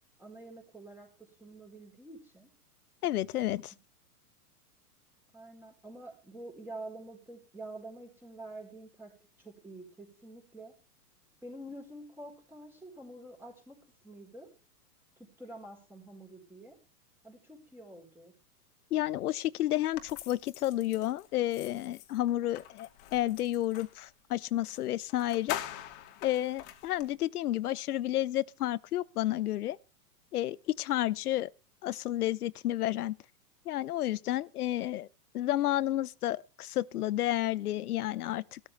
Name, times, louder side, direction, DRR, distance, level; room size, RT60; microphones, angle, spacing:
voice 1, 0.2-2.5 5.3-9.1 9.4-10.7 11.4-13.8 14.0-14.5 15.2-16.8 17.2-18.3, right 1 dB, 5° right, 4.5 m, -47 dB
voice 2, 3.0-3.7 18.9-25.6 26.2-29.8 30.3-31.5 31.8-33.2 33.7-35.1 35.3-38.6, left 14 dB, 70° left, 0.8 m, -31 dB
sound 1, 19.9-24.0 24.7-24.8 25.1-27.1, left 13 dB, 45° left, 2.3 m, -43 dB
16.0 x 13.0 x 3.4 m
hypercardioid pair, 135°, 46 cm